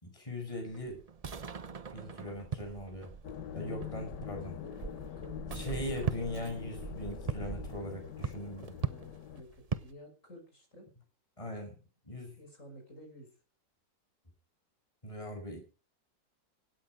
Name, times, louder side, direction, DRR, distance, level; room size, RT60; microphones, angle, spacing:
voice 1, 0.0-1.0 1.9-3.1 3.5-4.6 5.5-8.7 11.4-11.8 12.0-12.4 15.0-15.6, left 1 dB, 15° left, 2 dB, 6.1 m, -40 dB
sound 1, 0.7-9.9, right 6 dB, 60° right, 0.3 m, -40 dB
sound 2, 3.2-9.4, left 10 dB, 70° left, 1.6 m, -44 dB
voice 2, 4.5-6.1 8.8-10.9 12.4-13.4, left 1 dB, 40° left, 3 dB, 5.9 m, -52 dB
16.5 x 13.0 x 5.1 m, 0.37 s
omnidirectional pair, 2.0 m